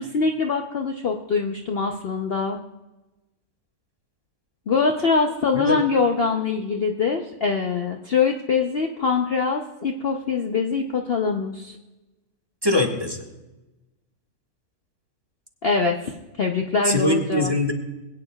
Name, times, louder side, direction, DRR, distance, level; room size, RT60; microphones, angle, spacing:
voice 1, 0.0-2.6 4.7-11.8 15.6-16.1 16.4-17.5, left 4 dB, 50° left, 2 dB, 0.8 m, -23 dB
voice 2, 12.6-13.2 16.8-17.7, left 2 dB, 15° right, 2 dB, 1.4 m, -22 dB
21.5 x 9.4 x 2.3 m, 1.0 s
omnidirectional pair, 1.6 m